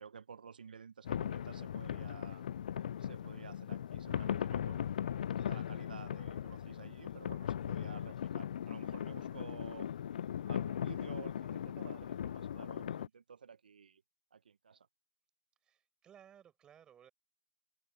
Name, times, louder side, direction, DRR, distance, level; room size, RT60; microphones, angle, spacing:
voice 1, 0.0-2.4 3.0-9.9 10.5-14.0 14.3-14.9, right 6 dB, 80° right, 1.1 m, -53 dB
sound 1, 1.0-13.1, left 9 dB, 65° left, 0.3 m, -38 dB
voice 2, 15.6-17.1, right 9 dB, 15° right, 5.1 m, -60 dB
hypercardioid pair, 135°, 5 cm